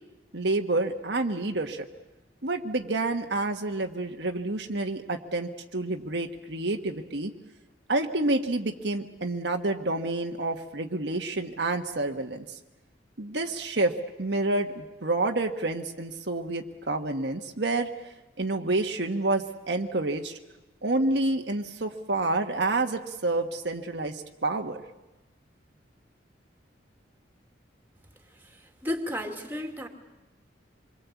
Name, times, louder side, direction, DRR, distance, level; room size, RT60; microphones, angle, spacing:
voice 1, 0.3-1.9 2.4-7.3 7.9-12.4 13.2-13.9 14.2-20.4 20.8-24.8, right 2 dB, 70° right, 4 dB, 1.5 m, -28 dB
voice 2, 28.3-29.9, left 1 dB, 10° right, 4 dB, 2.5 m, -34 dB
27.0 x 23.0 x 8.4 m, 1.0 s
head